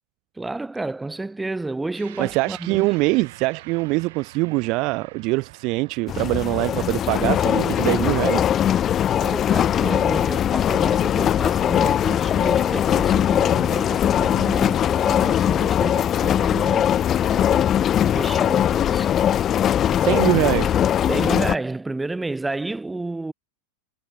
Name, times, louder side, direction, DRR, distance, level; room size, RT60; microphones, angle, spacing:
voice 1, 0.4-2.9 9.1-17.7 18.0-19.1 21.1-23.3, right 2 dB, 5° right, 3.6 m, -31 dB
sound 1, 1.9-10.6, right 17 dB, 65° right, 7.8 m, -48 dB
voice 2, 2.2-8.5 20.0-20.7, right 24 dB, 45° right, 0.5 m, -23 dB
sound 2, 6.1-21.6, left 10 dB, 25° left, 0.5 m, -20 dB
supercardioid pair, 150°, 0 cm